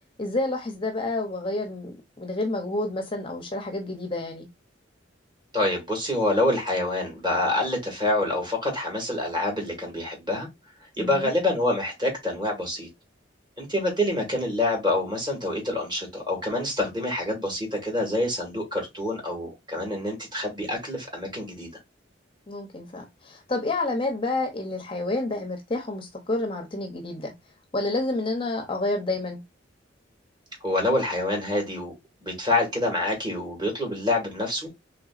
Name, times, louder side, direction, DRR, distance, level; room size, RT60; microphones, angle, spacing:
voice 1, 0.2-4.5 11.0-11.3 22.5-27.3 27.7-29.4, left 2 dB, 30° left, 0.6 m, -29 dB
voice 2, 5.5-10.5 11.0-12.9 13.6-21.7 30.6-31.9 32.2-34.7, left 1 dB, 25° right, 1.8 m, -26 dB
3.9 x 3.3 x 2.4 m
head